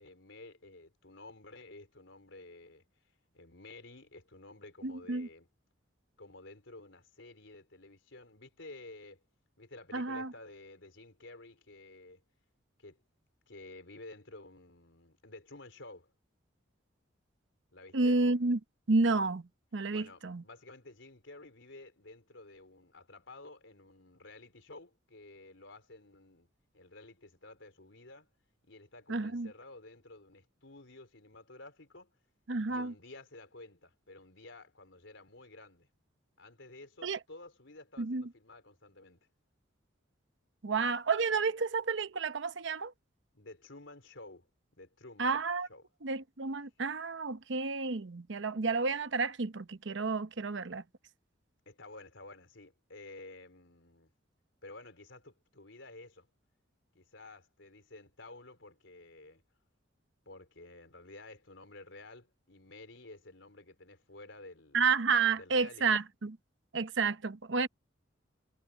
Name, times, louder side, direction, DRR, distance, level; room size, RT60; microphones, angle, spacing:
voice 1, 0.0-2.8 3.3-5.5 6.2-9.2 9.6-12.2 12.8-13.0 13.5-16.1 17.7-18.2 19.9-26.5 26.7-28.3 28.7-32.1 32.7-35.9 36.4-39.2 43.3-44.5 44.8-45.4 45.7-45.8 51.7-54.1 54.6-56.3 56.9-59.4 60.3-64.8 65.3-66.0, left 2 dB, 75° left, 4.3 m, -52 dB
voice 2, 4.8-5.3 9.9-10.3 17.9-18.6 18.9-19.4 19.7-20.4 29.1-29.5 32.5-32.9 37.0-37.2 38.0-38.2 40.6-42.9 45.2-45.7 46.0-50.8 64.7-66.4 66.7-67.7, right 4 dB, 70° right, 0.9 m, -30 dB
head